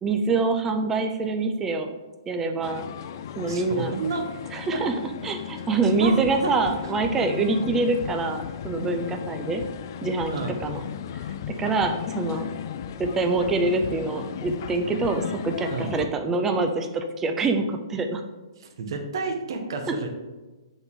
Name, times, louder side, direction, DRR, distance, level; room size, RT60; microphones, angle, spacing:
voice 1, 0.0-1.9 2.3-2.9 3.4-3.9 4.5-4.9 5.2-9.6 10.0-10.3 10.6-10.8 11.6-12.5 13.0-18.2, right 3 dB, 10° right, 6 dB, 0.5 m, -25 dB
sound 1, 2.6-16.1, left 9 dB, 45° left, 0.3 m, -35 dB
voice 2, 3.4-4.2 4.5-4.8 5.8-6.1 6.4-6.5 10.3-10.5 15.7-15.9 18.8-20.1, right 4 dB, 60° right, 3 dB, 1.1 m, -31 dB
7.0 x 4.1 x 3.7 m, 1.2 s
hypercardioid pair, 160°, 3 cm